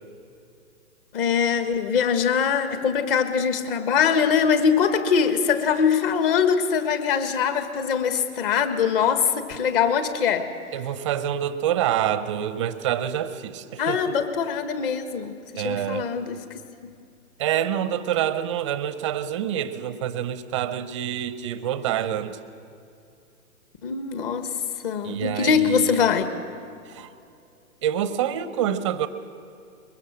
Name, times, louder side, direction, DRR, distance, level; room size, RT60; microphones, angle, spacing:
voice 1, 1.1-10.5 13.8-16.4 23.8-24.5 24.8-26.3, left 7 dB, 35° left, 8 dB, 1.6 m, -22 dB
voice 2, 10.7-14.2 15.5-16.1 17.4-22.4 25.0-26.0 26.9-27.1 27.8-29.1, right 10 dB, 20° right, 12 dB, 0.6 m, -27 dB
22.5 x 21.5 x 6.3 m, 2.6 s
hypercardioid pair, 135°, 45 cm